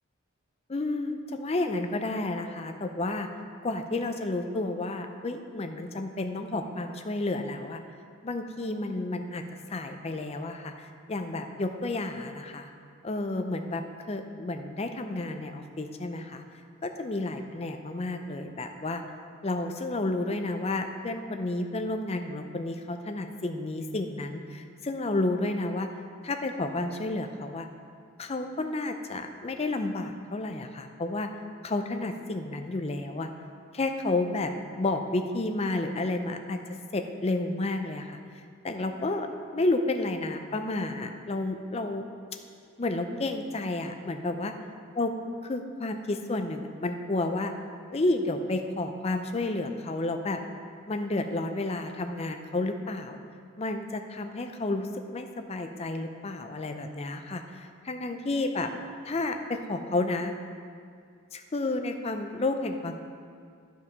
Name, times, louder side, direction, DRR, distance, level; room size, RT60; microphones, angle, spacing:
voice 1, 0.7-3.3 3.6-7.8 8.2-9.4 9.7-12.7 13.0-13.8 14.1-16.4 16.8-19.0 19.4-25.9 26.2-27.7 28.2-31.3 31.6-33.3 33.7-34.5 34.8-36.6 36.9-38.2 38.6-42.0 42.8-44.5 45.0-45.1 45.4-47.5 47.9-50.4 50.9-53.2 53.6-58.7 59.1-60.3 61.3-63.0, left 2 dB, 30° left, 6 dB, 0.5 m, -31 dB
11.0 x 4.7 x 5.3 m, 2.3 s
head